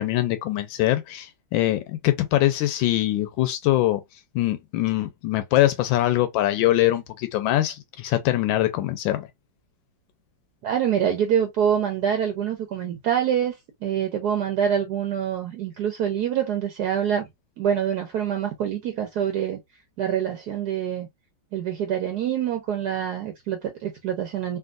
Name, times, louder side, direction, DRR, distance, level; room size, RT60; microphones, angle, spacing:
voice 1, 0.0-4.0 4.3-9.3, left 15 dB, 90° left, 1.3 m, -23 dB
voice 2, 10.6-17.3 17.6-19.6 20.0-21.1 21.5-24.6, right 9 dB, 70° right, 1.1 m, -25 dB
3.5 x 2.6 x 2.3 m
omnidirectional pair, 2.0 m